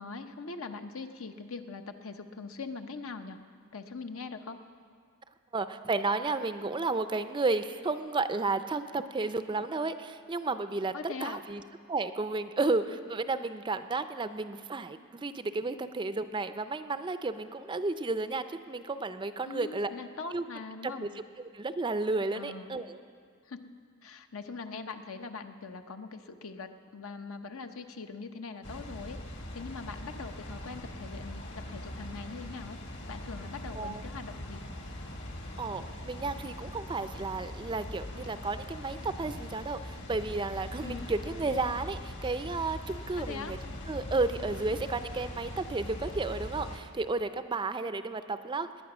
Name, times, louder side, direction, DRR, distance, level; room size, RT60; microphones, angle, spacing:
voice 1, 0.0-3.4 3.7-4.6 10.9-11.4 19.5-21.1 22.3-22.8 23.4-23.6 24.0-29.2 29.5-32.8 33.1-34.6 40.8-41.1 43.2-43.5, left 4 dB, 70° left, 7 dB, 0.8 m, -42 dB
voice 2, 5.5-11.6 11.9-19.9 20.3-20.4 20.8-20.9 21.5-23.0 33.7-34.0 35.6-43.6 43.9-48.7, right 3 dB, 20° right, 11 dB, 0.4 m, -32 dB
Water, 28.6-46.8, left 1 dB, 55° left, 1.8 m, -41 dB
20.0 x 9.6 x 6.1 m, 2.1 s
head